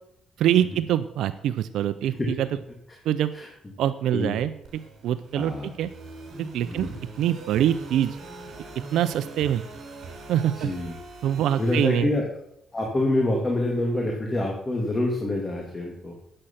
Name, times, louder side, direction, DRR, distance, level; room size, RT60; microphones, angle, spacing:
voice 1, 0.4-2.5 3.0-3.3 3.8-4.5 5.0-5.9 6.4-6.9 7.2-8.2 8.9-9.6 10.3-10.7 11.2-12.1, right 11 dB, 80° right, 12 dB, 0.6 m, -24 dB
sound 1, 4.6-11.9, right 2 dB, 60° right, 6.8 m, -42 dB
voice 2, 5.3-5.7 6.7-7.0 10.6-10.9 11.6-12.2 12.7-16.2, left 1 dB, 25° left, 0 dB, 2.8 m, -26 dB
13.0 x 8.9 x 5.8 m, 0.75 s
cardioid pair, 90°, 0 cm